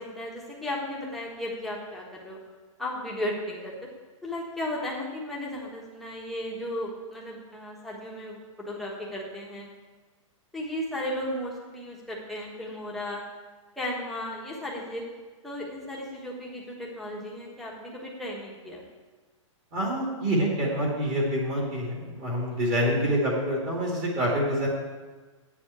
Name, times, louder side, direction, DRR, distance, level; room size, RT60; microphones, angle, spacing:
voice 1, 0.0-2.4 2.8-3.9 4.2-8.4 8.7-9.7 10.5-13.2 13.8-15.0 15.4-18.8 22.8-23.0, left 1 dB, ahead, -4 dB, 1.3 m, -35 dB
voice 2, 19.7-24.7, equal, 20° right, -3 dB, 2.1 m, -26 dB
8.9 x 7.1 x 8.3 m, 1.3 s
hypercardioid pair, 175°, 17 cm